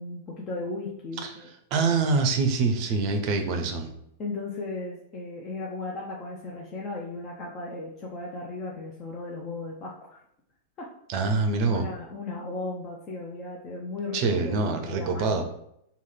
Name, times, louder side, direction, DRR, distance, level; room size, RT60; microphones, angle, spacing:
voice 1, 0.0-1.5 4.2-10.2 10.8-10.9 11.7-15.4, left 2 dB, 30° left, -2 dB, 0.6 m, -36 dB
voice 2, 1.7-3.9 11.1-11.9 14.1-15.5, right 4 dB, 40° right, 5 dB, 0.5 m, -25 dB
3.1 x 2.2 x 3.6 m, 0.75 s
figure-of-eight pair, 95°, 0 cm